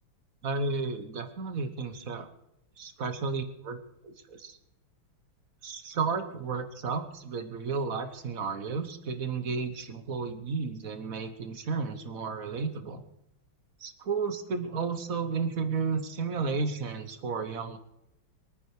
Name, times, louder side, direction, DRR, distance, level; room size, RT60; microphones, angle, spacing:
voice 1, 0.4-2.3 2.8-3.8 4.0-4.6 5.6-13.0 13.8-17.8, right 4 dB, 45° right, 9 dB, 1.5 m, -33 dB
22.5 x 9.3 x 4.9 m, 0.83 s
omnidirectional pair, 2.3 m